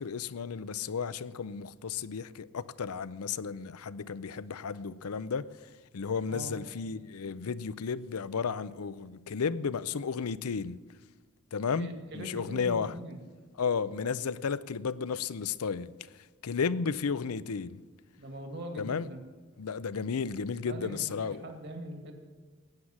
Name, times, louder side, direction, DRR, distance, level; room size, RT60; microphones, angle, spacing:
voice 1, 0.0-5.5 5.9-10.8 11.5-13.0 13.6-15.9 16.4-17.8 18.8-19.1 19.6-21.5, left 5 dB, 80° left, 0.5 m, -33 dB
voice 2, 11.8-13.2 18.2-19.2 20.6-22.1, right 1 dB, 50° right, 2.2 m, -42 dB
16.0 x 9.7 x 7.3 m
head